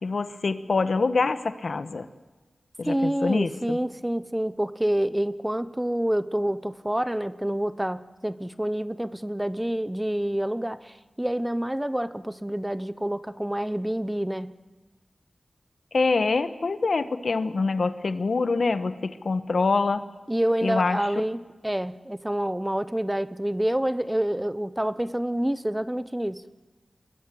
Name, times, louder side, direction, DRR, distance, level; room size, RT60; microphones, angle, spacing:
voice 1, 0.0-2.1 2.8-3.8 15.9-20.1 20.6-21.0, left 4 dB, 65° left, 11 dB, 1.3 m, -25 dB
voice 2, 2.8-14.5 20.3-26.4, right 1 dB, 10° right, 14 dB, 0.8 m, -27 dB
29.0 x 21.5 x 7.8 m, 1.2 s
wide cardioid pair, 100°, 0 cm